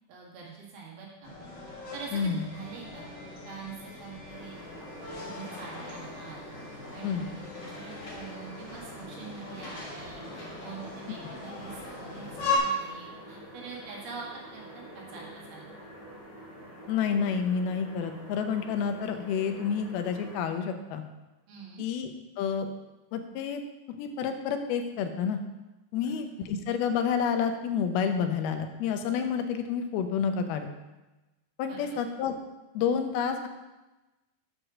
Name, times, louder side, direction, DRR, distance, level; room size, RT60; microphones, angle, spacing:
voice 1, 0.1-1.3 1.9-3.1 3.4-4.6 5.2-6.4 6.9-14.6 14.9-15.7 21.5-21.8 25.9-26.1 26.4-26.5 31.7-32.0, right 5 dB, 80° right, -3 dB, 3.7 m, -44 dB
sound 1, 1.2-12.6, left 3 dB, 60° left, 1.1 m, -39 dB
voice 2, 2.1-2.4 7.0-7.3 16.9-21.0 21.8-22.1 22.4-22.7 23.1-23.6 24.0-25.4 25.9-30.7 31.6-32.3 32.7-33.5, left 7 dB, 90° left, 6 dB, 2.7 m, -29 dB
sound 2, 4.3-20.4, equal, 15° left, 1.5 m, -47 dB
7.7 x 4.7 x 6.2 m, 1.1 s
omnidirectional pair, 4.3 m